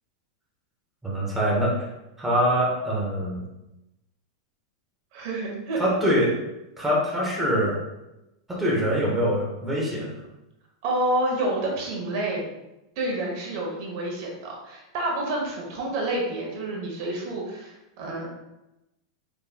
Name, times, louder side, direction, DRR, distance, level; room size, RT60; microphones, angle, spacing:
voice 1, 1.0-1.9 2.2-3.4 5.8-6.4 6.8-7.8 8.5-10.1, equal, 5° right, -5 dB, 0.9 m, -24 dB
voice 2, 5.1-5.8 10.8-12.5 13.0-18.3, right 1 dB, 55° right, -1 dB, 1.0 m, -28 dB
3.6 x 3.1 x 2.2 m, 0.93 s
supercardioid pair, 130°, 2 cm